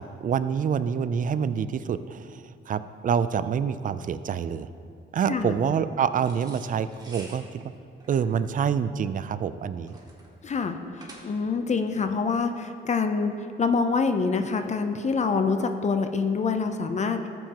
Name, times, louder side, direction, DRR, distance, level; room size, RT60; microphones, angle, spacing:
voice 1, 0.0-4.7 5.1-7.6 8.1-10.0, right 7 dB, 40° right, 13 dB, 0.4 m, -27 dB
voice 2, 5.3-5.6 10.4-17.3, left 4 dB, 35° left, 7 dB, 0.6 m, -26 dB
sound 1, 6.2-11.6, right 2 dB, 20° right, 2.2 m, -49 dB
13.5 x 7.8 x 2.9 m, 2.5 s
cardioid pair, 90°, 20 cm